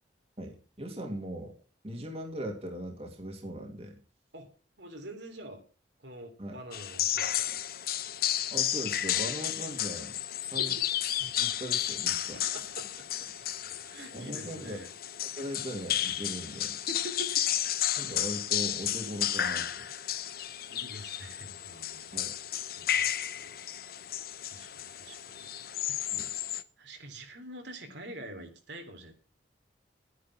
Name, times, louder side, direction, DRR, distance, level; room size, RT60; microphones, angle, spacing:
voice 1, 0.4-1.6 1.8-4.0 6.4-6.6 8.5-10.7 11.2-12.4 14.1-14.8 15.4-16.8 18.0-19.9 22.1-22.3 26.1-26.3, equal, 30° right, 2 dB, 2.5 m, -39 dB
voice 2, 4.8-5.6 6.0-7.6 10.6-10.8 12.3-13.3 13.7-14.9 16.9-17.4 20.7-22.2 22.7-23.6 24.5-25.5 26.0-26.4 26.8-29.1, right 1 dB, 70° right, 4 dB, 3.2 m, -46 dB
sound 1, 6.7-26.6, left 11 dB, 50° left, 0.8 m, -32 dB
12.5 x 10.0 x 6.1 m, 0.36 s
head